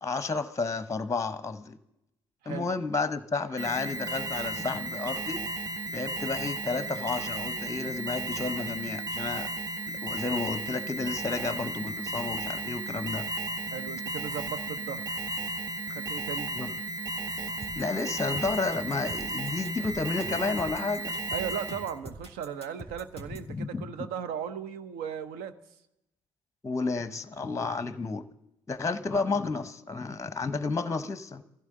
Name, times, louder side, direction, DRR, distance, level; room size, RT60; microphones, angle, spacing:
voice 1, 0.0-1.8 2.5-5.4 5.9-9.5 10.0-13.3 16.5-16.7 17.8-21.1 23.5-23.9 26.6-28.2 28.7-31.4, left 3 dB, 20° left, 13 dB, 0.8 m, -31 dB
Alarm, 3.6-22.0, right 2 dB, 25° right, 1.0 m, -34 dB
voice 2, 13.7-15.3 15.8-16.5 21.3-25.6, right 8 dB, 70° right, 12 dB, 0.8 m, -37 dB
sound 1, 17.6-23.5, right 1 dB, 40° right, 2.8 m, -44 dB
23.5 x 15.5 x 3.8 m, 0.86 s
figure-of-eight pair, 45°, 16 cm